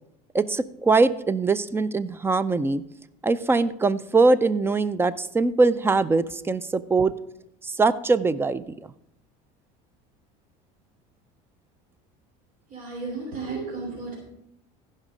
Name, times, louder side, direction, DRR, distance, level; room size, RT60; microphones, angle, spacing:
voice 1, 0.3-2.8 3.2-7.1 7.6-8.6, right 3 dB, 15° right, 16 dB, 0.4 m, -22 dB
voice 2, 12.7-14.2, right 4 dB, 50° right, -1 dB, 2.9 m, -33 dB
14.5 x 5.4 x 5.0 m, 0.79 s
supercardioid pair, 125°, 18 cm